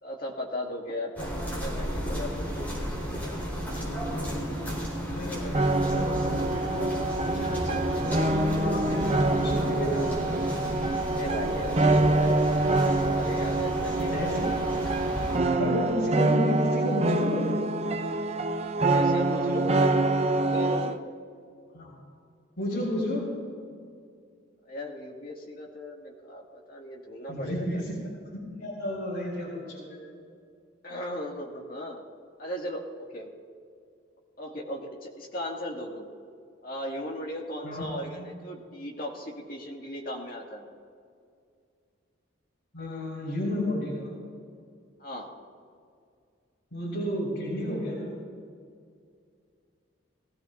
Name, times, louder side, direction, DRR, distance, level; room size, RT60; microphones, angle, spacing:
voice 1, 0.0-2.9 11.1-12.5 13.0-14.5 18.8-19.9 20.4-21.0 24.7-27.8 30.8-32.0 32.4-32.8 33.1-33.3 34.4-36.0 36.6-40.7 45.0-45.3, left 1 dB, 45° left, -2 dB, 2.1 m, -37 dB
sound 1, 1.2-15.4, equal, 10° left, 3.9 m, -33 dB
voice 2, 5.1-10.2 14.1-14.4 14.7-14.9 15.6-17.5 21.7-22.0 22.6-23.3 27.3-28.0 28.2-30.0 37.6-37.9 38.1-38.3 42.7-44.1 46.7-48.1, equal, 80° left, -7 dB, 4.0 m, -32 dB
sound 2, 5.5-21.0, right 2 dB, 35° right, 0.6 m, -26 dB
20.5 x 15.5 x 2.6 m, 2.3 s
head